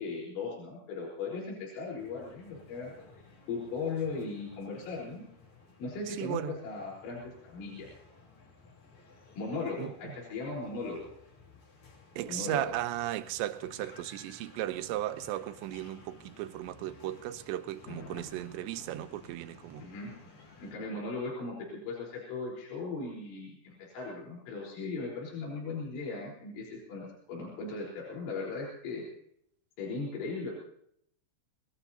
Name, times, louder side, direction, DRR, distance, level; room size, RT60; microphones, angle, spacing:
voice 1, 0.0-5.3 5.8-7.9 9.4-11.1 12.3-12.7 19.8-20.1 20.6-29.0 29.8-30.5, left 3 dB, 85° left, 6.6 m, -38 dB
sound 1, 2.0-20.7, left 4 dB, 40° left, 4.4 m, -56 dB
voice 2, 6.1-6.6 9.8-9.9 12.2-19.9, right 13 dB, 80° right, 3.0 m, -36 dB
Thunder, 17.7-21.6 21.9-22.0, left 4 dB, 60° left, 2.1 m, -53 dB
26.5 x 19.0 x 2.8 m
omnidirectional pair, 5.3 m